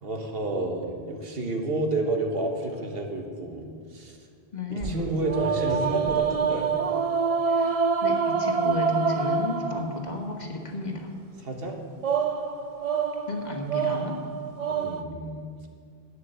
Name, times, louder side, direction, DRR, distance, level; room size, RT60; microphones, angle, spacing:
voice 1, 0.0-3.6 3.9-4.2 4.7-6.7 11.4-11.8 14.6-15.7, right 2 dB, 70° right, 3 dB, 1.6 m, -30 dB
voice 2, 4.5-5.0 7.5-11.1 13.3-14.2, left 3 dB, 45° left, 2 dB, 1.4 m, -33 dB
sound 1, 4.8-10.2 12.0-15.0, right 6 dB, 45° right, 0.6 m, -26 dB
11.5 x 9.3 x 6.8 m, 2.1 s
omnidirectional pair, 1.0 m